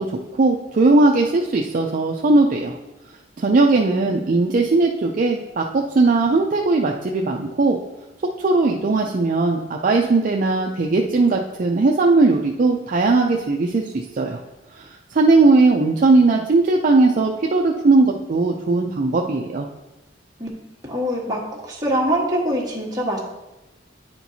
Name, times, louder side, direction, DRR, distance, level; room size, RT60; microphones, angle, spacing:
voice 1, 0.0-2.8 3.4-7.8 8.4-14.4 14.7-19.7, right 3 dB, 45° right, 1 dB, 0.4 m, -18 dB
voice 2, 3.5-4.2 20.4-20.5 20.8-23.2, equal, 20° right, -3 dB, 1.3 m, -24 dB
10.0 x 4.4 x 2.7 m, 1.1 s
head